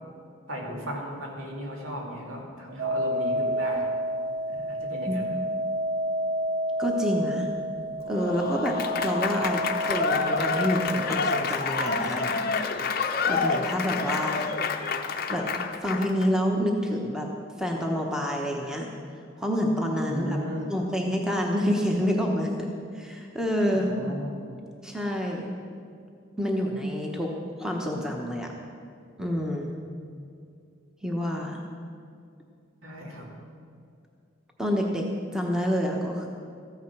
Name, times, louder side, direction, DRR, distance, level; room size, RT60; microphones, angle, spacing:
voice 1, 0.5-3.9 4.5-5.4 20.1-20.7 23.7-24.4 32.8-33.3, equal, 80° right, -1 dB, 2.7 m, -36 dB
sound 1, 2.8-11.4, right 1 dB, 45° right, 2.5 m, -30 dB
voice 2, 6.8-7.5 8.1-12.7 13.3-14.4 15.3-15.4 15.8-17.3 17.6-18.9 19.4-20.4 20.7-22.7 22.9-23.9 24.8-25.5 26.4-27.3 27.6-28.5 29.2-29.7 31.0-31.6 34.6-35.0 35.3-36.3, equal, 5° right, 0 dB, 1.0 m, -28 dB
Applause / Crowd, 8.1-16.3, left 4 dB, 45° left, 0.6 m, -28 dB
14.0 x 9.4 x 5.9 m, 2.4 s
head